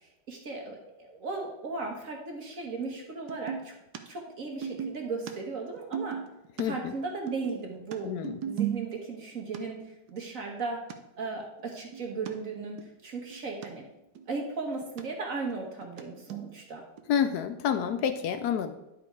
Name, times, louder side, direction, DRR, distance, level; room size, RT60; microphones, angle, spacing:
voice 1, 0.0-3.7 4.0-6.2 6.6-8.1 8.5-10.8 11.2-13.8 14.3-16.8, right 3 dB, 50° right, 1 dB, 1.5 m, -36 dB
sound 1, 3.3-3.7 3.9-4.0 4.3-6.6 6.9-9.2 9.5-9.6 10.1-10.2 10.6-10.7 10.9-11.0 11.3-12.3 12.8-12.9 13.1-13.7 14.0-15.0 15.3-16.0 16.3-16.6 17.0-17.1 17.7-17.8, right 9 dB, 65° right, 1.2 m, -36 dB
voice 2, 6.6-6.9 8.0-8.4 17.1-18.7, left 8 dB, 75° left, 10 dB, 0.9 m, -28 dB
10.5 x 5.1 x 4.6 m, 0.95 s
omnidirectional pair, 2.1 m